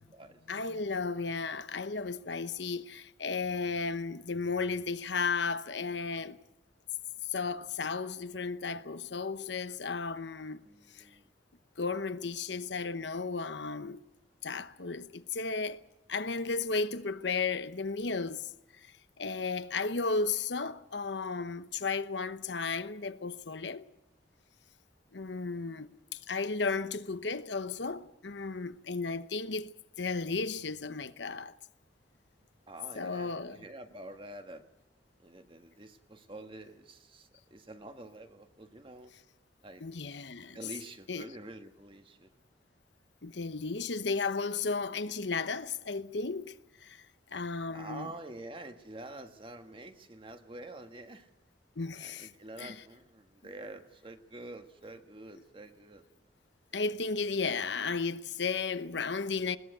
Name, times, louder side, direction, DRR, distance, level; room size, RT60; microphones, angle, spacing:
voice 1, 0.5-6.4 7.3-10.6 10.9-11.1 11.8-14.0 14.4-15.8 16.1-18.5 18.8-23.9 25.1-31.5 32.9-33.6 39.8-40.6 41.1-41.3 43.2-47.0 47.3-48.1 51.8-52.3 52.6-52.7 56.7-59.6, left 4 dB, 75° left, 1.0 m, -34 dB
voice 2, 10.6-11.3 32.7-34.6 35.2-39.1 39.6-39.8 40.5-42.3 47.7-51.3 52.0-56.0 56.7-56.8 57.4-57.6, right 2 dB, 30° right, 1.6 m, -47 dB
20.5 x 18.5 x 7.9 m
head